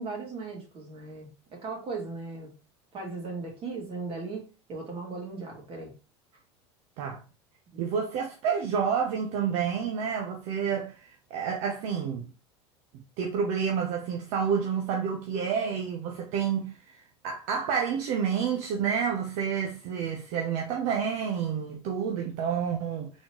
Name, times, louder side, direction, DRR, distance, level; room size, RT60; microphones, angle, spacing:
voice 1, 0.0-2.5 2.9-5.9, right 3 dB, 40° right, 2.5 m, -37 dB
voice 2, 7.8-12.3 13.2-17.0 17.2-23.1, right 7 dB, 60° right, 0.9 m, -29 dB
4.3 x 3.8 x 3.1 m
hypercardioid pair, 95°, 15 cm